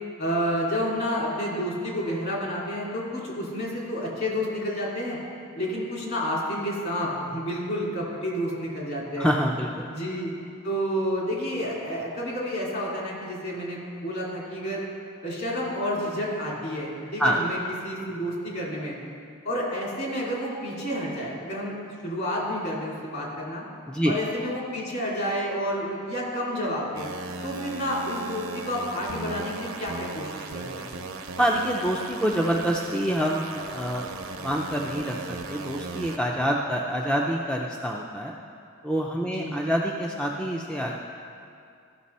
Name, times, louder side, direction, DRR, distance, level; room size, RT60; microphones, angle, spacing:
voice 1, 0.2-5.2 5.5-9.3 9.9-10.3 10.6-14.9 15.2-19.0 19.4-21.8 22.0-23.7 24.0-27.1 27.4-30.9 39.2-39.6, equal, 50° left, -4 dB, 2.3 m, -30 dB
voice 2, 9.2-9.9 17.2-17.4 23.9-24.1 31.4-34.1 34.4-38.3 38.8-40.9, equal, 5° left, -1 dB, 0.4 m, -26 dB
sound 1, 27.0-36.2, right 3 dB, 75° right, 0.7 m, -37 dB
14.0 x 5.9 x 4.2 m, 2.4 s
head